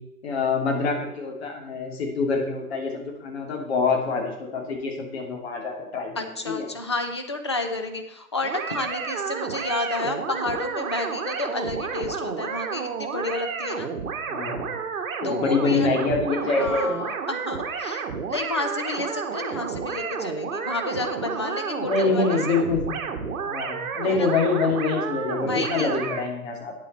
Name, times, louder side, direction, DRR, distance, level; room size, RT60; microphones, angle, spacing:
voice 1, 0.2-6.7 14.3-14.8 15.2-16.9 21.8-23.0 23.5-26.8, left 4 dB, 45° left, 1 dB, 2.9 m, -25 dB
voice 2, 6.2-13.9 15.2-15.9 16.5-22.4 24.1-24.3 25.4-25.9, left 2 dB, 20° left, 5 dB, 0.4 m, -31 dB
sound 1, 8.4-26.2, right 6 dB, 65° right, 1.5 m, -31 dB
9.7 x 8.3 x 4.2 m, 0.90 s
hypercardioid pair, 155°, 44 cm